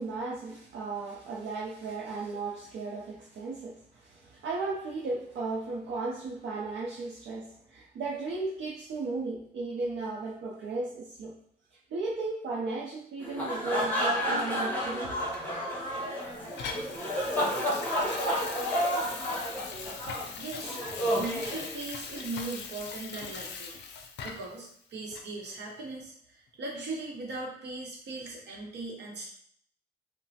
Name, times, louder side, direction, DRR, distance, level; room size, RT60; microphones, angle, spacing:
voice 1, 0.0-11.4 11.9-15.1, right 3 dB, 90° right, -4 dB, 0.5 m, -35 dB
sound 1, 13.2-22.2, equal, 10° left, 0.8 m, -31 dB
Water tap faucet / Sink (filling or washing), 15.3-24.6 25.1-25.3, left 5 dB, 80° left, 0.4 m, -41 dB
voice 2, 20.4-20.8 21.1-23.8 24.2-26.1 26.6-29.3, right 3 dB, 75° right, -1 dB, 0.9 m, -39 dB
3.0 x 2.0 x 2.7 m, 0.63 s
cardioid pair, 120°, 18 cm